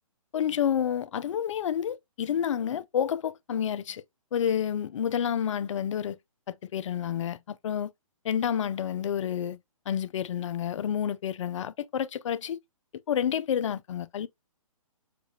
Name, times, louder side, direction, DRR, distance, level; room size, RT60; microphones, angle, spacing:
voice 1, 0.3-4.0 4.3-6.2 6.5-7.9 8.2-9.6 9.9-12.6 13.1-14.3, left 9 dB, 60° left, 0.4 m, -29 dB
6.7 x 2.4 x 2.7 m
hypercardioid pair, 135°, 18 cm